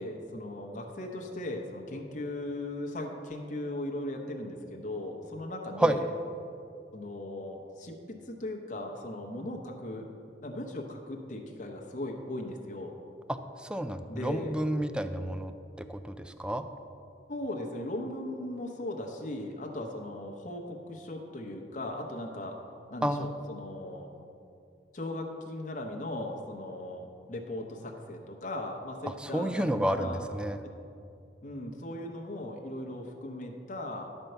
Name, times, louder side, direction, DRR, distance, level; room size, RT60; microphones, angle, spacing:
voice 1, 0.0-6.1 6.9-10.1 10.4-12.9 14.1-14.6 17.3-22.6 22.9-24.1 24.9-30.2 31.4-34.1, left 1 dB, 45° left, 1 dB, 0.9 m, -38 dB
voice 2, 13.7-15.5 15.8-16.0 16.4-16.6 23.0-23.2 29.3-30.6, right 1 dB, 5° right, 9 dB, 0.3 m, -29 dB
11.5 x 4.5 x 6.6 m, 2.6 s
head